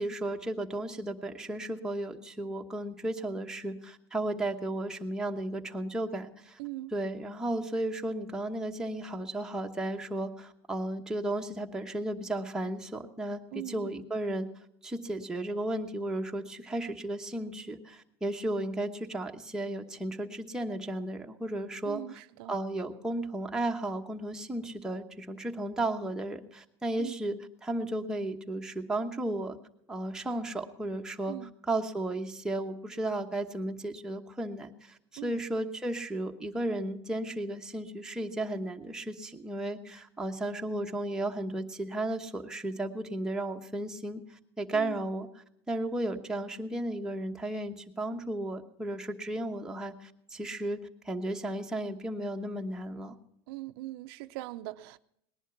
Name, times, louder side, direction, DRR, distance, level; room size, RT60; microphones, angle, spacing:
voice 1, 0.0-6.6 6.9-14.5 14.8-22.2 22.5-29.6 29.9-53.1, right 1 dB, 5° right, 1.0 m, -34 dB
voice 2, 6.6-6.9 13.5-13.9 21.8-22.6 27.0-27.2 31.3-31.5 35.2-35.4 44.7-45.0 53.5-55.0, right 18 dB, 75° right, 0.5 m, -40 dB
19.0 x 11.0 x 5.9 m
supercardioid pair, 140°, 13 cm